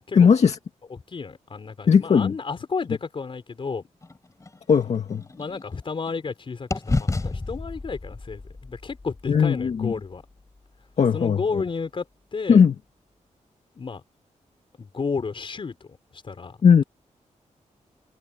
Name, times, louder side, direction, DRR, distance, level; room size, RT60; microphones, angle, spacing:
voice 1, 0.1-0.6 1.9-2.3 4.7-5.2 9.3-9.9 11.0-11.6 12.5-12.8 16.6-16.8, left 6 dB, 60° left, 1.9 m, -18 dB
voice 2, 0.9-3.8 5.3-10.2 11.1-12.0 12.3-12.6 13.7-14.0 14.8-15.8 16.1-16.6, left 5 dB, 40° left, 4.8 m, -32 dB
sound 1, 4.0-6.3 6.7-10.7, left 3 dB, 25° left, 4.1 m, -32 dB
wide cardioid pair, 120°, 13 cm